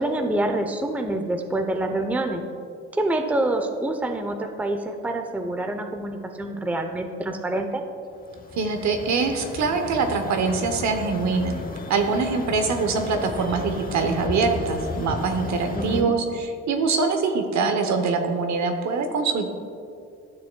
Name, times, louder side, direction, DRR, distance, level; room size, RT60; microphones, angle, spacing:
voice 1, 0.0-2.4 2.9-7.8 15.7-16.1, right 1 dB, 5° right, 5 dB, 0.6 m, -26 dB
sound 1, 8.1-16.0, left 3 dB, 30° left, 0.9 m, -34 dB
voice 2, 8.6-11.6 11.9-19.5, right 4 dB, 65° right, 5 dB, 0.9 m, -24 dB
13.0 x 6.7 x 2.2 m, 2.4 s
cardioid pair, 90°, 30 cm